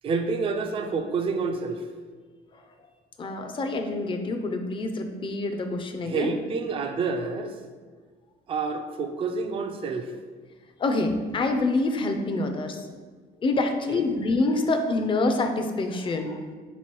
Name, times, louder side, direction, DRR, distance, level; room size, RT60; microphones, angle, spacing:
voice 1, 0.0-1.8 6.0-7.6 8.5-10.1 13.9-14.1, right 4 dB, 30° right, 6 dB, 0.4 m, -28 dB
voice 2, 3.2-6.4 10.8-12.8 13.4-16.4, left 2 dB, 30° left, 6 dB, 0.4 m, -26 dB
3.5 x 3.1 x 4.5 m, 1.5 s
cardioid pair, 110°, 17 cm